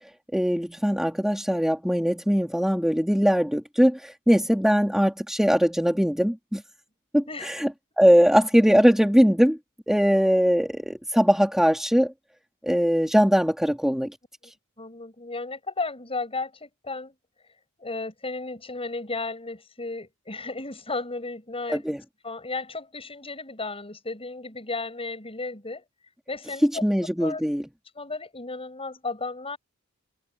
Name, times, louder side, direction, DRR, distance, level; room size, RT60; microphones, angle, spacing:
voice 1, 0.3-6.6 7.1-7.7 8.0-9.6 9.9-12.1 12.6-14.1 21.7-22.0 26.6-27.6, equal, ahead, 2.5 m, -21 dB
voice 2, 14.8-17.1 17.8-21.8 22.2-25.8 26.3-26.8 27.2-27.4 28.0-29.6, left 3 dB, 25° left, 7.5 m, -34 dB
head